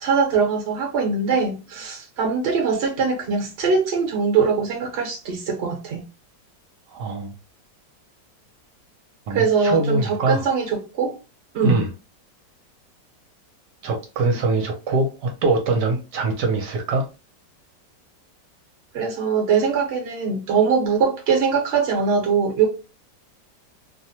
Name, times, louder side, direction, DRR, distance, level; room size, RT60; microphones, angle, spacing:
voice 1, 0.0-6.0 9.3-11.1 11.5-11.8 18.9-22.7, right 5 dB, 45° right, 1.0 m, -22 dB
voice 2, 6.9-7.3 9.3-10.4 11.6-11.9 13.8-17.1, right 3 dB, 75° right, 1.2 m, -23 dB
2.9 x 2.1 x 2.7 m
omnidirectional pair, 1.9 m